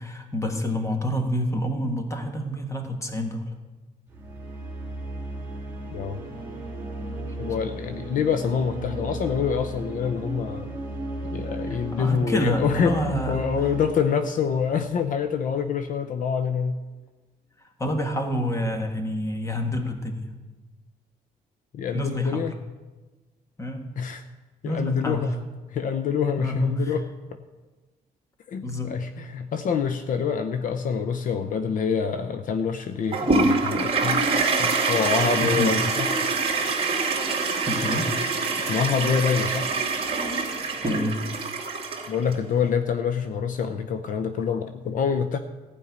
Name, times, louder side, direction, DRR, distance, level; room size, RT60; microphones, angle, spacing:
voice 1, 0.0-3.5 11.7-13.5 17.8-20.3 21.9-22.5 23.6-23.9 24.6-25.2 26.4-26.9 28.6-28.9 35.4-35.7 37.6-38.1 40.8-41.2, equal, 20° left, 5 dB, 1.6 m, -28 dB
sound 1, 4.1-15.6, right 2 dB, 10° right, 2.6 m, -35 dB
voice 2, 7.4-10.7 11.3-16.8 21.7-22.5 24.0-24.2 24.6-25.3 25.7-27.1 28.5-34.2 34.6-36.1 38.7-39.7 42.1-45.4, left 6 dB, 60° left, 9 dB, 0.7 m, -26 dB
Toilet flush, 33.1-42.3, right 4 dB, 35° right, 2.4 m, -25 dB
15.5 x 5.5 x 9.4 m, 1.2 s
cardioid pair, 140°, 16 cm